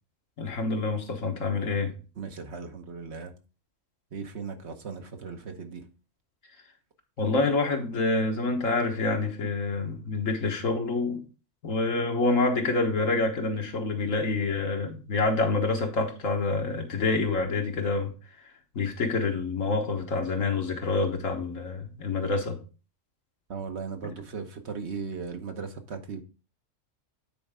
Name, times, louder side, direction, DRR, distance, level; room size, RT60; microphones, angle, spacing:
voice 1, 0.4-1.9 7.2-11.2 11.6-18.1 18.7-22.6, left 3 dB, 80° left, 1.8 m, -27 dB
voice 2, 2.2-3.3 4.1-5.9 23.5-26.2, right 5 dB, 60° right, 1.2 m, -37 dB
9.3 x 4.5 x 3.6 m
omnidirectional pair, 1.3 m